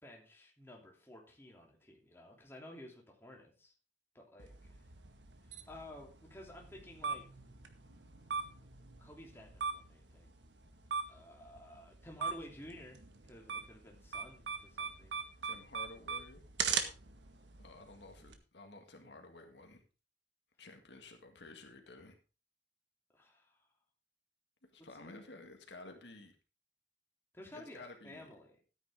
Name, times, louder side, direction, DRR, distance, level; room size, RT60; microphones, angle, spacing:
voice 1, 0.0-3.7 4.1-4.8 5.4-7.2 9.0-10.4 11.1-13.0 13.3-15.2 23.1-23.7 25.0-25.3 27.3-28.6, left 1 dB, 15° left, -1 dB, 3.0 m, -53 dB
sound 1, 4.4-18.3, right 5 dB, 75° right, 1.5 m, -42 dB
voice 2, 15.4-16.4 17.6-19.8 20.6-22.1 24.7-26.4 27.5-28.3, left 2 dB, 70° left, 4 dB, 1.9 m, -53 dB
13.0 x 9.6 x 3.7 m, 0.33 s
head